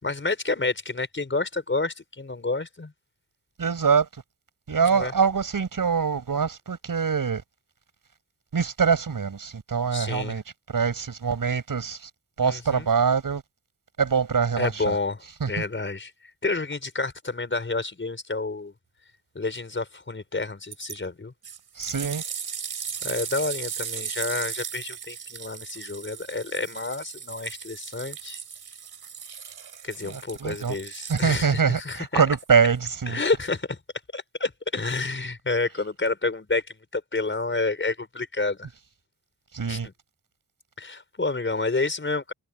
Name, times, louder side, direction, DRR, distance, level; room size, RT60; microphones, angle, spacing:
voice 1, 0.0-2.9 4.9-5.1 9.9-10.4 12.4-12.9 14.6-16.1 16.4-18.7 19.4-21.3 23.0-28.4 29.8-32.1 33.1-33.8 34.1-38.7 39.7-39.8 40.8-42.3, left 3 dB, 30° left, 5.2 m, -29 dB
voice 2, 3.6-4.1 4.7-7.4 8.5-10.4 10.7-12.1 12.4-13.4 14.0-15.0 15.4-15.5 21.8-22.2 30.0-30.8 31.1-33.2 39.5-39.9, right 6 dB, 60° right, 6.5 m, -24 dB
sound 1, 20.7-21.0 21.4-31.6 32.4-32.5, right 7 dB, 75° right, 3.0 m, -37 dB
wide cardioid pair, 110°, 38 cm